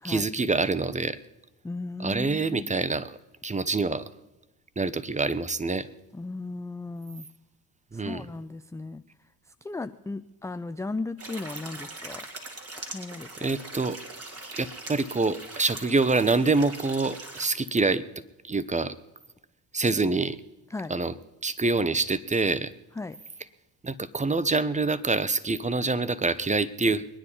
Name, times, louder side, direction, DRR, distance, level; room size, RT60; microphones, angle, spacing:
voice 1, 0.0-1.2 2.0-3.2 3.4-4.1 4.8-5.9 7.9-8.3 13.4-14.0 14.5-18.0 18.4-18.9 19.7-20.4 20.9-21.1 21.4-22.7 23.8-27.1, right 3 dB, 15° right, 16 dB, 0.9 m, -26 dB
voice 2, 1.6-2.7 6.1-7.3 7.9-9.0 9.5-12.3 12.8-13.5 20.7-20.9 23.0-23.2, left 3 dB, 5° left, 11 dB, 0.4 m, -36 dB
sound 1, 11.2-17.5, right 2 dB, 30° right, 3.4 m, -41 dB
22.0 x 9.8 x 5.5 m, 1.0 s
hypercardioid pair, 60°, 45 cm